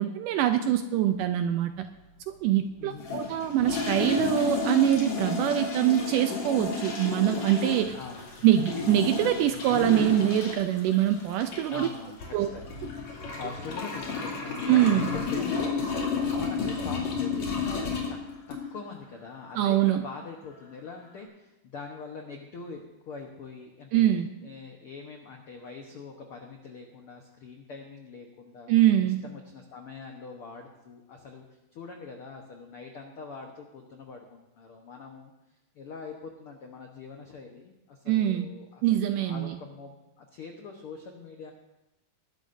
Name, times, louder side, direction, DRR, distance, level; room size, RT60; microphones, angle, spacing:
voice 1, 0.0-1.9 2.3-7.9 8.4-11.9 12.3-12.5 14.7-15.1 19.6-20.0 23.9-24.3 28.7-29.2 38.1-38.5 38.8-39.6, right 12 dB, 80° right, 8 dB, 1.9 m, -24 dB
voice 2, 2.8-3.3 7.9-8.3 11.7-12.2 12.5-12.7 13.0-18.2 18.5-24.1 24.4-28.7 29.0-35.3 35.7-38.8 39.2-41.5, left 4 dB, 80° left, 2 dB, 1.2 m, -43 dB
sound 1, 3.0-18.9, left 5 dB, 50° left, 3.6 m, -32 dB
sound 2, 7.8-10.9 11.2-11.3 13.1-15.8 16.3-17.2, left 2 dB, 30° left, 6.1 m, -45 dB
21.0 x 12.0 x 2.6 m, 0.98 s
omnidirectional pair, 4.2 m